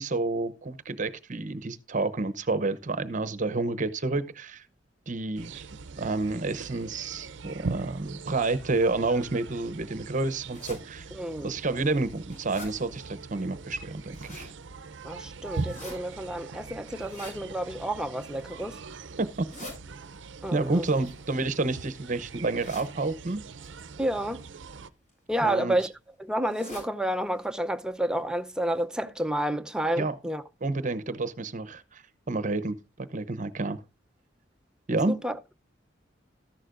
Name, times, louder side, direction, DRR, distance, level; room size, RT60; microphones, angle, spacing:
voice 1, 0.0-4.6 5.1-5.6 6.0-11.1 11.4-14.5 19.2-19.5 20.5-23.4 25.4-25.8 30.0-30.2 30.6-33.8 34.9-35.3, right 3 dB, 45° right, 0.8 m, -29 dB
sound 1, 5.4-24.9, right 4 dB, 75° right, 0.6 m, -41 dB
sound 2, 10.5-10.8 11.4-11.5 12.0-12.7 13.9-14.5 15.5-15.9 16.9-17.4 18.1-18.5 19.2-19.8 20.9-21.9 22.6-22.9 23.6-23.8 24.8-25.1 25.4-25.5 25.8-25.9 26.4-26.9 27.3-27.4 27.7-27.8 28.4-28.5 28.8-28.9, left 1 dB, 45° left, 7.7 m, -45 dB
voice 2, 11.1-11.5 15.0-18.8 20.4-20.8 24.0-24.4 25.3-25.9 26.2-30.4 35.1-35.5, right 1 dB, 5° right, 0.7 m, -30 dB
13.5 x 11.5 x 2.5 m
head